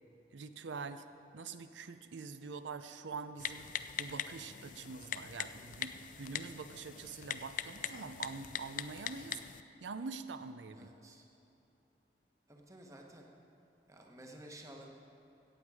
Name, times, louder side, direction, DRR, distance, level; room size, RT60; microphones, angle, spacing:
voice 1, 0.3-1.0 1.3-3.7 4.0-9.4 9.8-10.9, right 4 dB, 90° right, 11 dB, 0.6 m, -45 dB
Typing, 3.4-9.6, left 9 dB, 45° left, 0.3 m, -42 dB
voice 2, 10.7-11.3 12.5-13.3 13.9-14.9, right 1 dB, 20° right, 1 dB, 1.1 m, -53 dB
16.5 x 8.0 x 4.8 m, 2.9 s
head